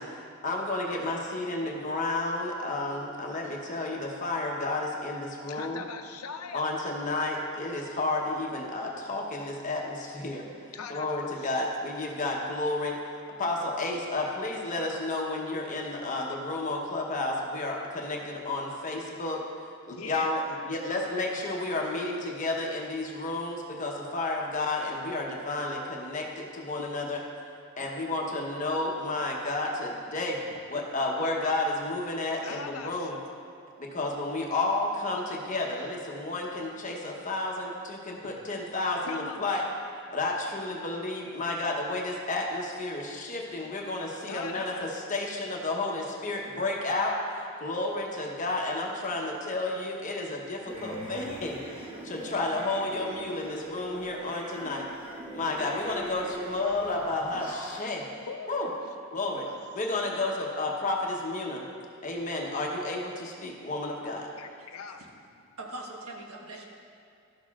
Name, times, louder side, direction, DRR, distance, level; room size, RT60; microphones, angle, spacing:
voice 1, 0.0-5.8 6.5-10.5 10.9-19.4 19.9-27.2 27.8-30.4 30.7-33.2 33.8-39.6 40.1-54.9 55.3-58.1 58.5-58.7 59.1-59.5 59.7-61.6 62.0-64.3, left 2 dB, 35° left, -1 dB, 0.9 m, -31 dB
voice 2, 5.5-6.8 10.7-11.5 19.8-20.3 32.4-33.2 39.0-39.7 44.3-45.0 57.3-57.5 58.3-58.6 59.2-59.6 60.0-60.2 62.2-62.4 64.4-65.0, left 5 dB, 80° left, 5 dB, 0.5 m, -41 dB
sound 1, 50.7-57.8, right 1 dB, 25° right, 0.7 m, -41 dB
voice 3, 65.6-66.7, right 2 dB, 85° right, -1 dB, 1.2 m, -41 dB
12.5 x 6.5 x 2.4 m, 2.3 s
head